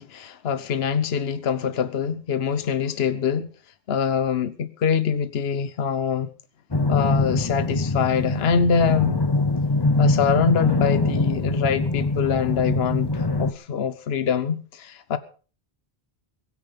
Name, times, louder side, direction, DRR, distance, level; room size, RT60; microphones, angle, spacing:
voice 1, 0.0-3.5 3.9-6.3 6.9-9.2 10.0-15.2, left 7 dB, 75° left, 1.2 m, -24 dB
sound 1, 6.7-13.5, left 2 dB, 25° left, 1.0 m, -23 dB
22.5 x 9.8 x 5.2 m
omnidirectional pair, 1.1 m